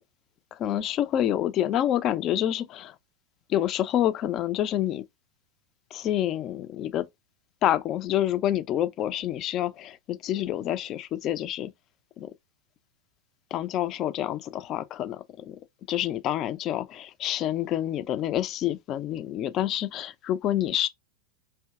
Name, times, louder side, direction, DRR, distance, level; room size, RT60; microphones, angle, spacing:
voice 1, 0.5-2.9 3.5-5.0 5.9-7.1 7.6-11.7 12.2-12.3 13.5-15.6 15.9-20.9, left 12 dB, 35° left, 0.5 m, -27 dB
4.5 x 2.8 x 2.3 m
figure-of-eight pair, 90°, 0 cm